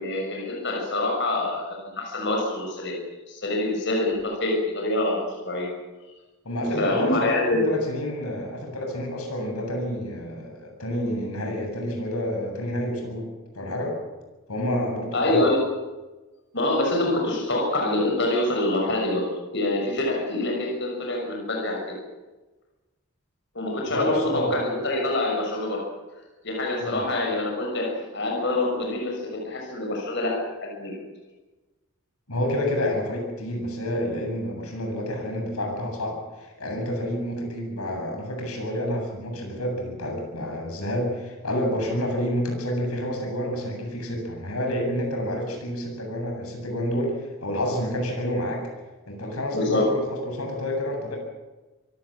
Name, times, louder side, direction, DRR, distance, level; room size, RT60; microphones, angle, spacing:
voice 1, 0.0-2.9 3.3-5.2 5.4-5.7 6.8-7.7 15.1-15.6 16.5-19.3 19.5-22.0 23.5-25.8 26.4-30.3 30.6-31.0 49.5-49.9, left 2 dB, 55° left, 0 dB, 6.4 m, -25 dB
voice 2, 6.4-13.3 13.5-14.0 14.5-15.4 23.9-24.6 26.8-27.0 32.3-48.7 49.1-51.2, equal, 85° left, 2 dB, 7.9 m, -29 dB
25.5 x 18.5 x 7.5 m, 1.2 s
head